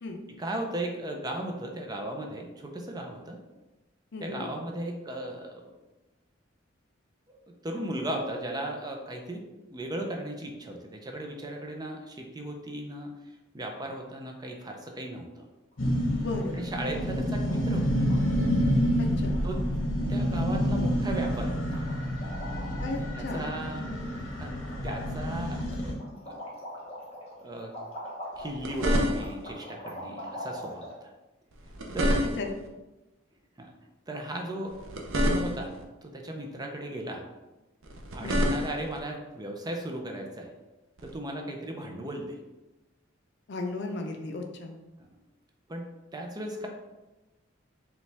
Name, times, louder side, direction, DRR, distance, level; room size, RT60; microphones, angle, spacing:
voice 1, 0.3-3.4 4.2-5.6 7.3-9.4 9.7-13.1 13.5-15.4 16.5-18.1 19.4-19.6 20.1-21.8 22.9-23.9 24.4-26.4 27.4-27.7 28.4-31.1 31.9-32.2 33.6-33.7 34.1-37.3 38.1-40.5 41.0-42.4 45.0-45.1 45.7-46.7, right 1 dB, 20° right, 2 dB, 0.5 m, -36 dB
voice 2, 4.1-4.5 16.2-16.6 19.0-19.4 22.8-23.6 32.4-32.5 38.2-38.6 43.5-44.8, left 2 dB, 60° left, 4 dB, 0.5 m, -35 dB
sound 1, 15.7-16.2 16.5-16.6 16.8-17.1 17.3-18.2 18.4-18.6 18.9-19.0 19.3-19.9 20.2-20.3 20.6-21.0 21.2-23.2 23.5-24.3 24.6-30.9, left 1 dB, 30° left, 1.0 m, -43 dB
sound 2, 15.8-25.9, equal, 75° left, 0.9 m, -28 dB
sound 3, 28.3-29.5 31.5-32.7 34.7-35.8 37.8-39.0 41.0-41.1, equal, 90° right, 0.6 m, -28 dB
5.1 x 2.3 x 3.3 m, 1.1 s
head